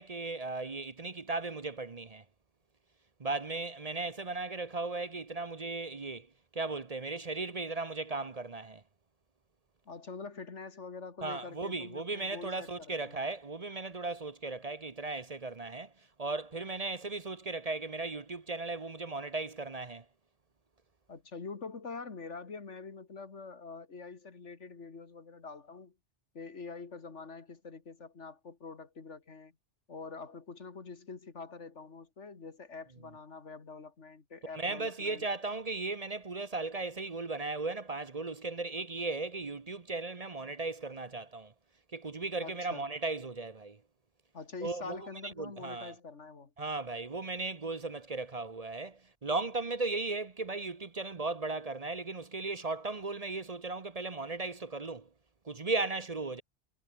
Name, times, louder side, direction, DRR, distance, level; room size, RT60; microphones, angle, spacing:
voice 1, 0.0-2.2 3.2-6.3 6.5-8.8 11.2-15.9 16.2-20.0 34.6-41.5 41.9-43.8 44.6-45.0 45.4-45.9 46.6-55.1 55.4-56.4, right 3 dB, 35° right, 1.0 m, -36 dB
voice 2, 9.9-13.2 21.1-25.9 26.3-29.5 29.9-35.3 42.4-42.9 44.3-46.5, left 4 dB, 90° left, 2.5 m, -45 dB
omnidirectional pair, 1.2 m